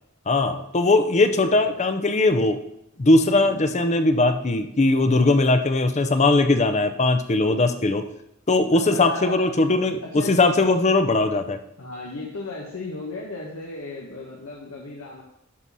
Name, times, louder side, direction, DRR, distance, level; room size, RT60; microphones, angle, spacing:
voice 1, 0.3-2.6 3.0-8.0 8.5-11.6, left 2 dB, 35° left, 8 dB, 0.6 m, -20 dB
voice 2, 1.2-1.7 3.3-3.8 7.4-7.9 8.7-9.4 10.0-10.8 11.8-15.2, left 2 dB, 85° left, -3 dB, 1.5 m, -35 dB
11.0 x 4.2 x 6.2 m, 0.79 s
head